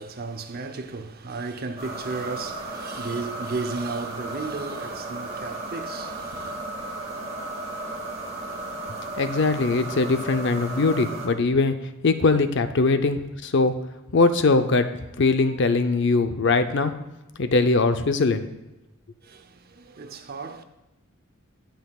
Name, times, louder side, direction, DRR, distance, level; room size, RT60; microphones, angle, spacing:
voice 1, 0.0-6.6 19.2-20.6, right 4 dB, 45° right, 0.7 m, -34 dB
sound 1, 1.8-11.3, right 2 dB, 30° right, 1.9 m, -34 dB
voice 2, 9.2-11.7 12.0-13.7 14.1-14.9 15.2-16.9 17.4-18.4, left 3 dB, 60° left, 0.6 m, -21 dB
17.5 x 5.8 x 2.4 m
head